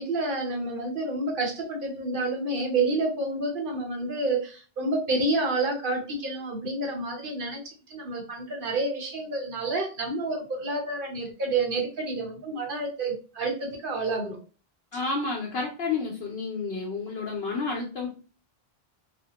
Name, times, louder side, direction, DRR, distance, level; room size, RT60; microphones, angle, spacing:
voice 1, 0.0-7.6 7.9-14.4, right 2 dB, 55° right, 0 dB, 1.0 m, -29 dB
voice 2, 14.9-18.1, left 4 dB, 70° left, -1 dB, 0.8 m, -30 dB
3.4 x 2.0 x 2.9 m, 0.37 s
omnidirectional pair, 1.1 m